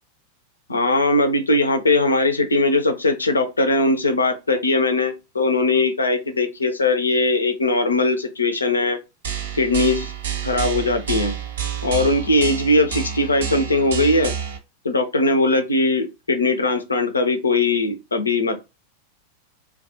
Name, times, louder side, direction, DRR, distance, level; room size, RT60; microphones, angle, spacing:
voice 1, 0.7-9.0 9.5-10.1 10.4-11.3 11.8-14.3 14.8-18.6, left 2 dB, 75° left, 0.5 m, -20 dB
sound 1, 9.2-14.6, right 8 dB, 60° right, 0.5 m, -29 dB
2.3 x 2.2 x 2.7 m
figure-of-eight pair, 90°, 0 cm